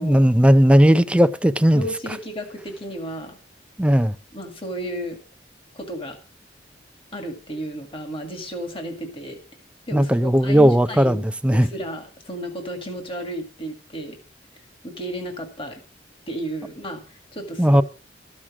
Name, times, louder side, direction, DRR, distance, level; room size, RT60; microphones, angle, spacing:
voice 1, 0.0-1.8 3.8-4.1 9.9-11.7 17.6-17.8, equal, 5° right, 0.5 m, -16 dB
voice 2, 1.7-3.4 4.3-5.2 5.7-6.2 7.1-9.4 9.9-11.2 11.5-14.2 14.8-15.8 16.3-17.8, equal, 30° left, 2.1 m, -33 dB
13.5 x 6.4 x 7.3 m
head